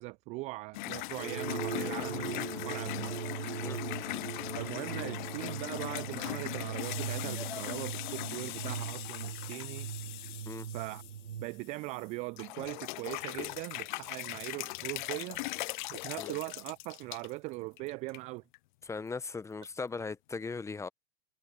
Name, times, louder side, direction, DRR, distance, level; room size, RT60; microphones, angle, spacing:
voice 1, 0.0-3.6 4.5-9.9 10.7-11.0 11.4-15.4 15.9-18.4, right 23 dB, 20° right, 0.4 m, -40 dB
sound 1, 0.7-12.0 12.4-17.3 17.8-18.2 18.5-18.6 19.6-19.7, left 20 dB, 45° left, 0.8 m, -40 dB
sound 2, 1.2-11.5, right 8 dB, 75° right, 1.6 m, -40 dB
sound 3, 2.3-7.9, left 4 dB, 85° left, 6.5 m, -53 dB
voice 2, 18.8-20.9, left 4 dB, 10° left, 1.0 m, -38 dB
figure-of-eight pair, 105°, 33 cm